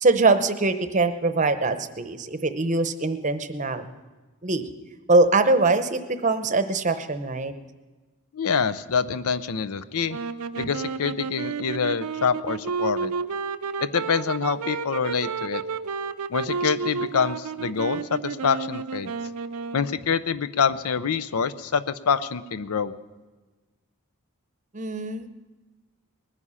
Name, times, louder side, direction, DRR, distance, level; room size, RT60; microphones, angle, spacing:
voice 1, 0.0-3.9 4.4-4.6 5.1-7.5 24.7-25.3, right 3 dB, 35° right, 10 dB, 0.8 m, -22 dB
voice 2, 8.3-10.2 10.6-13.1 13.8-15.6 16.3-19.1 19.7-22.9, left 6 dB, 80° left, 14 dB, 0.6 m, -26 dB
sound 1, 10.1-20.1, right 5 dB, 85° right, 0.6 m, -31 dB
20.0 x 9.7 x 5.6 m, 1.3 s
head